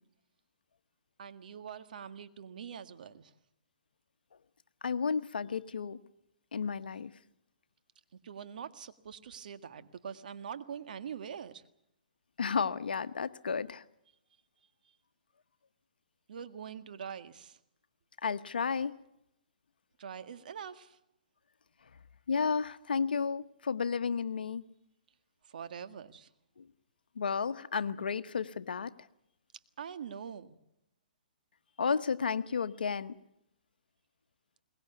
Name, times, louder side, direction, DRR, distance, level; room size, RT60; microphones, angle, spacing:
voice 1, 1.2-3.3 8.2-11.6 16.3-17.6 20.0-21.0 25.5-26.3 29.8-30.6, right 7 dB, 65° right, 1.8 m, -44 dB
voice 2, 4.8-6.0 6.5-7.1 12.4-13.8 18.2-18.9 22.3-24.6 26.6-26.7 27.2-28.9 31.8-33.1, left 5 dB, 85° left, 1.1 m, -32 dB
22.5 x 20.0 x 8.2 m
hypercardioid pair, 145°, 5 cm